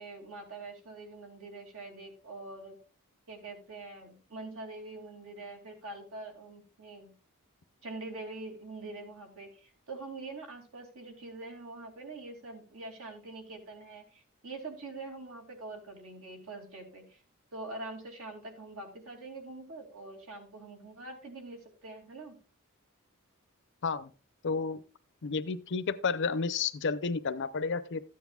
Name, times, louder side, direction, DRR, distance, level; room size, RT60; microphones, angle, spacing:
voice 1, 0.0-2.8 3.3-7.1 7.8-17.2 17.5-22.4, right 2 dB, 70° right, 2 dB, 2.5 m, -44 dB
voice 2, 24.4-24.8 25.2-28.0, left 5 dB, 55° left, 14 dB, 0.6 m, -31 dB
13.5 x 9.2 x 2.3 m, 0.35 s
head